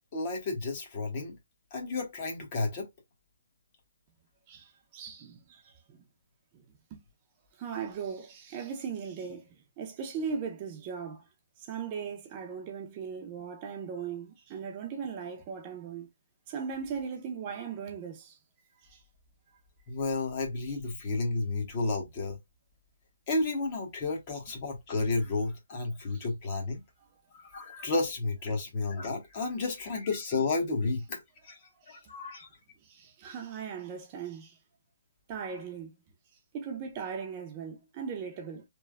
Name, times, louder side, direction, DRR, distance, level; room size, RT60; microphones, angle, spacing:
voice 1, 0.1-1.4 1.7-2.9 19.9-22.4 23.3-26.8 27.3-31.6 31.9-32.5, left 3 dB, 30° left, 0.9 m, -32 dB
voice 2, 4.5-5.7 6.9-7.0 7.6-9.5 9.8-11.2 11.6-16.1 16.5-18.4 18.9-19.0 26.1-26.2 31.9-32.0 32.8-34.6 35.3-35.9 36.5-38.6, right 6 dB, 25° right, 0.5 m, -38 dB
3.2 x 2.1 x 2.2 m
hypercardioid pair, 160°, 0 cm